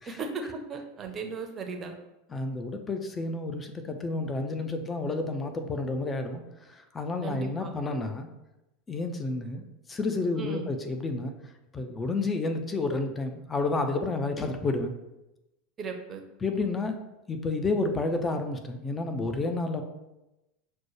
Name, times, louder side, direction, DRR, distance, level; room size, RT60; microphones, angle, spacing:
voice 1, 0.1-1.9 7.2-7.8 10.3-10.7 15.8-16.2, right 4 dB, 30° right, 4 dB, 0.6 m, -36 dB
voice 2, 2.3-8.3 8.9-9.6 9.9-11.3 11.7-14.9 16.4-17.0 17.3-19.8, left 3 dB, 20° left, 6 dB, 0.5 m, -30 dB
6.0 x 2.2 x 3.0 m, 0.96 s
figure-of-eight pair, 80°, 0 cm